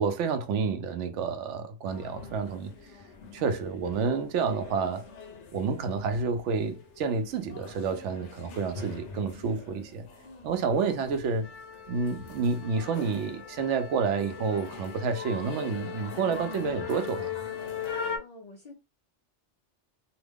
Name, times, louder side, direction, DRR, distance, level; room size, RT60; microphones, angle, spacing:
voice 1, 0.0-2.7 3.3-5.1 5.5-10.0 10.4-11.5 11.9-17.3, right 5 dB, 80° right, 0.9 m, -29 dB
sound 1, 1.9-18.2, left 6 dB, 80° left, 1.0 m, -41 dB
voice 2, 10.2-10.6 18.1-18.7, left 2 dB, 50° left, 0.5 m, -49 dB
2.9 x 2.1 x 3.4 m
omnidirectional pair, 1.2 m